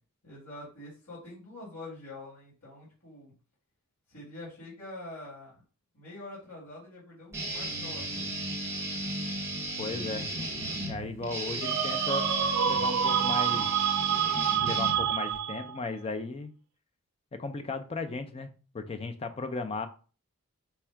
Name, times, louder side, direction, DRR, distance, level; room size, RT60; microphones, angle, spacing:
voice 1, 0.2-3.3 4.1-5.6 5.9-8.3, left 2 dB, 70° left, -7 dB, 2.0 m, -45 dB
Guitar, 7.3-15.4, right 1 dB, 10° right, 0.8 m, -35 dB
voice 2, 9.8-10.3 10.8-12.3 12.6-13.7 14.6-16.5 17.3-18.5 18.7-19.9, left 3 dB, 25° left, 8 dB, 0.4 m, -36 dB
sound 1, 11.6-15.8, right 8 dB, 80° right, 0.4 m, -27 dB
4.2 x 2.3 x 4.5 m, 0.37 s
head